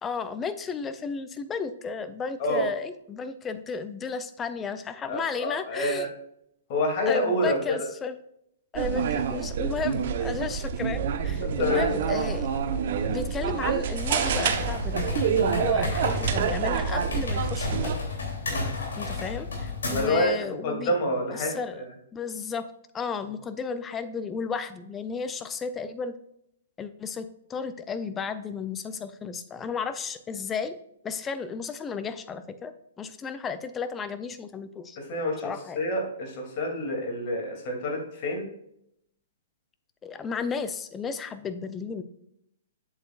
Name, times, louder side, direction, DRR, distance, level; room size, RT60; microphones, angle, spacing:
voice 1, 0.0-6.1 7.1-8.2 8.7-12.5 13.1-18.0 19.0-21.0 21.4-21.8 22.1-22.7 22.9-26.1 26.8-30.8 31.0-35.0 35.4-35.8 40.0-42.0, left 5 dB, 20° left, 11 dB, 0.6 m, -33 dB
voice 2, 5.1-6.1 6.7-7.7 11.4-11.9 18.5-18.7 19.9-21.9 35.0-38.5, left 1 dB, 45° left, 2 dB, 2.8 m, -28 dB
sound 1, 8.7-17.9, right 7 dB, 55° right, 1.0 m, -27 dB
sound 2, 13.9-20.2, left 3 dB, 75° left, 3.2 m, -32 dB
8.0 x 7.5 x 2.5 m, 0.75 s
hypercardioid pair, 120°, 0 cm